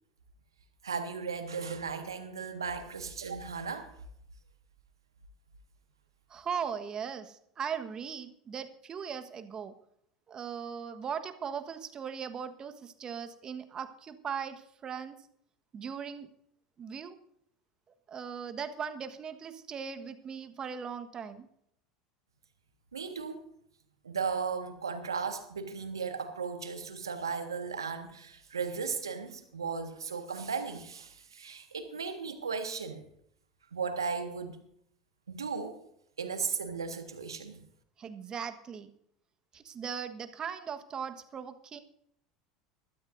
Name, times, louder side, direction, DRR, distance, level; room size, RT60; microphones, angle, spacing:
voice 1, 0.8-3.9 22.9-23.4 24.0-33.1 33.7-34.6 35.3-35.8 36.2-37.6, right 5 dB, 85° right, 7 dB, 1.6 m, -36 dB
voice 2, 6.3-9.7 10.3-15.2 15.7-16.3 16.8-17.2 18.1-21.5 38.0-38.9 39.5-41.8, right 7 dB, 35° right, 9 dB, 1.4 m, -39 dB
21.5 x 13.0 x 2.7 m, 0.71 s
hypercardioid pair, 80°, 2 cm